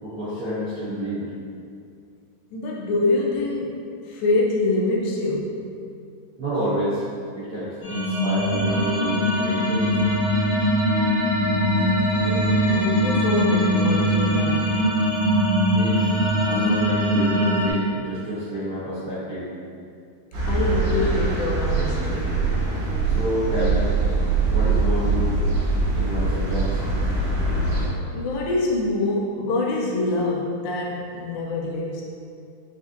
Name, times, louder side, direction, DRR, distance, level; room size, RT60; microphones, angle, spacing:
voice 1, 0.0-1.3 6.4-7.0 7.3-9.9 15.7-16.0 16.4-19.5 23.0-23.9 24.5-25.4 25.9-26.8, right 1 dB, 90° right, -15 dB, 0.8 m, -29 dB
voice 2, 2.5-5.6 12.2-14.8 20.5-22.4 28.1-32.0, left 2 dB, 85° left, -3 dB, 2.5 m, -25 dB
sound 1, 7.8-17.7, equal, 65° left, 1.9 m, -21 dB
sound 2, 20.3-27.9, right 3 dB, 65° right, 2.1 m, -23 dB
6.1 x 2.6 x 2.6 m, 2.3 s
omnidirectional pair, 4.2 m